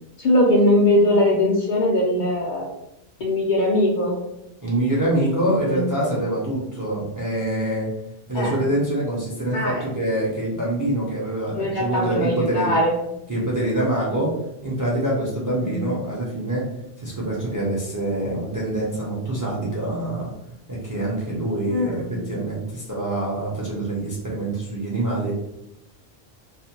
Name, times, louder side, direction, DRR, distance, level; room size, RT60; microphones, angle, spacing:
voice 1, 0.2-2.7 3.2-4.2 5.6-6.1 8.3-8.6 9.5-9.9 11.5-13.0 15.6-16.0 21.7-22.2, left 1 dB, 60° left, -2 dB, 0.6 m, -21 dB
voice 2, 4.6-7.9 8.3-12.7 13.3-14.3 14.6-16.6 17.0-20.3 20.7-25.3, right 1 dB, 25° right, -5 dB, 0.5 m, -25 dB
2.4 x 2.1 x 2.8 m, 0.84 s
omnidirectional pair, 1.1 m